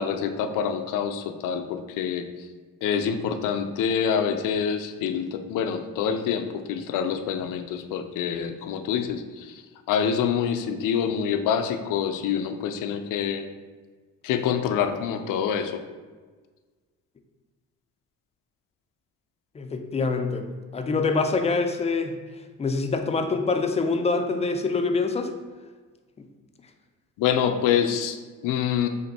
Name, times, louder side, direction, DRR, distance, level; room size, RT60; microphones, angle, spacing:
voice 1, 0.0-2.2 2.8-9.5 9.9-13.5 14.2-15.8 27.2-28.9, left 8 dB, 80° left, 7 dB, 0.5 m, -26 dB
voice 2, 19.6-22.2 22.6-25.3, left 4 dB, 20° left, 5 dB, 0.3 m, -25 dB
3.5 x 2.5 x 4.0 m, 1.4 s
cardioid pair, 95°, 31 cm